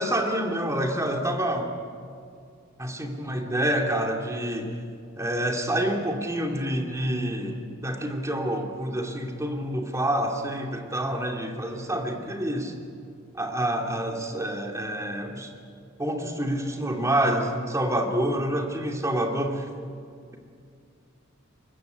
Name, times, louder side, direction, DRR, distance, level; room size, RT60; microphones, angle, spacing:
voice 1, 0.0-1.7 2.8-4.7 5.2-12.7 13.3-15.5 16.0-19.7, right 1 dB, 15° right, 2 dB, 2.6 m, -27 dB
23.5 x 21.0 x 9.3 m, 2.3 s
head